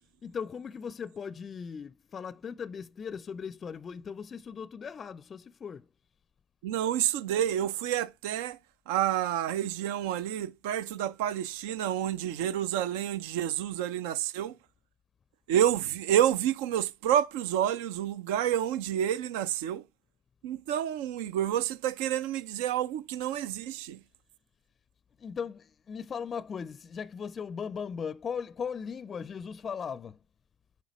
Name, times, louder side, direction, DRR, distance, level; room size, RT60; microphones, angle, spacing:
voice 1, 0.2-5.9 25.2-30.2, left 6 dB, 45° left, 0.4 m, -38 dB
voice 2, 6.6-8.6 8.9-14.6 15.5-19.8 20.4-24.0, right 11 dB, 80° right, 0.4 m, -29 dB
8.7 x 5.7 x 3.0 m
hypercardioid pair, 60°, 0 cm